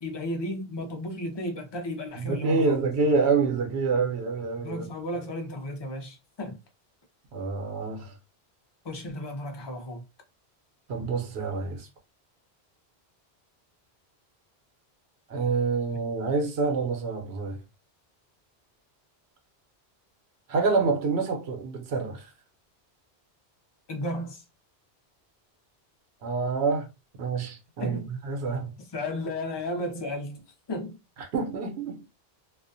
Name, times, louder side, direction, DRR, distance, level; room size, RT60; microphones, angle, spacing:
voice 1, 0.0-2.8 4.6-6.6 8.8-10.0 23.9-24.4 27.8-28.1 28.8-31.0, left 1 dB, 35° left, 0.5 m, -34 dB
voice 2, 2.2-4.9 7.3-8.1 10.9-11.9 15.3-17.6 20.5-22.3 26.2-26.9 27.2-28.8 31.3-32.0, right 4 dB, 80° right, 0.9 m, -27 dB
2.4 x 2.1 x 2.5 m
omnidirectional pair, 1.1 m